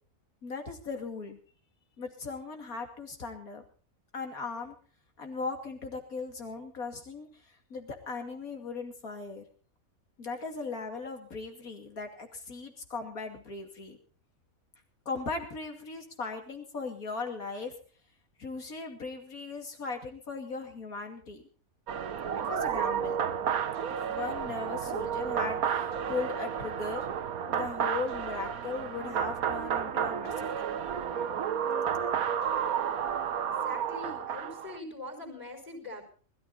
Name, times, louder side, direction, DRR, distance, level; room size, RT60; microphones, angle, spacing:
voice 1, 0.4-1.4 2.0-3.6 4.1-4.7 5.2-9.4 10.2-14.0 15.1-17.7 18.4-21.4 22.4-23.2 24.0-27.1 27.5-30.7, left 4 dB, 80° left, 4 dB, 3.0 m, -38 dB
sound 1, 21.9-34.8, right 8 dB, 80° right, 1.4 m, -31 dB
voice 2, 33.4-36.0, left 1 dB, 25° left, -1 dB, 4.6 m, -43 dB
20.5 x 13.0 x 4.1 m, 0.42 s
omnidirectional pair, 1.5 m